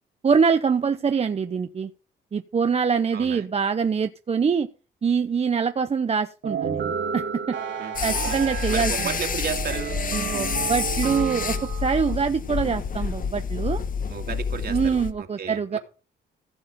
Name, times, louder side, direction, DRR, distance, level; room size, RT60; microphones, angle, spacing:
voice 1, 0.2-1.9 2.3-4.7 5.0-7.6 8.0-9.1 10.1-13.8 14.7-15.8, right 6 dB, 30° right, 9 dB, 0.7 m, -24 dB
voice 2, 3.1-3.5 7.8-8.4 8.7-10.0 14.1-15.8, right 6 dB, 55° right, 5 dB, 2.4 m, -33 dB
sound 1, 6.4-12.1, right 8 dB, 75° right, 2.4 m, -31 dB
sound 2, 8.0-15.1, left 6 dB, 45° left, 1.1 m, -28 dB
15.5 x 6.6 x 5.1 m, 0.36 s
cardioid pair, 90°, 20 cm